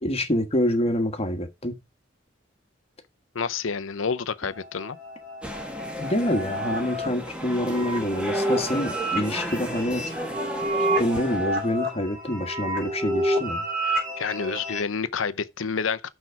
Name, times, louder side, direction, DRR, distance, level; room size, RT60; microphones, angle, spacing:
voice 1, 0.0-1.8 6.0-10.4 11.0-13.7, left 1 dB, 30° left, 1.5 m, -26 dB
voice 2, 3.3-5.0 13.9-16.1, left 5 dB, 80° left, 0.7 m, -29 dB
sound 1, 4.5-14.8, right 1 dB, 50° right, 3.2 m, -29 dB
sound 2, 5.4-11.8, equal, 5° right, 1.4 m, -34 dB
6.2 x 5.7 x 5.9 m
head